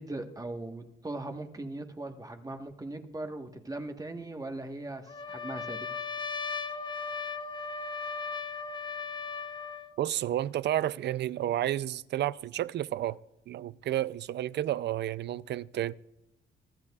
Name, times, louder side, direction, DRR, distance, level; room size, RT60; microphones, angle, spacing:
voice 1, 0.0-5.9, right 2 dB, 20° right, 1.3 m, -39 dB
Trumpet, 5.1-9.9, left 5 dB, 25° left, 0.9 m, -37 dB
voice 2, 10.0-13.2 13.5-15.9, right 12 dB, 60° right, 0.4 m, -31 dB
24.5 x 12.0 x 2.4 m
cardioid pair, 90°, 20 cm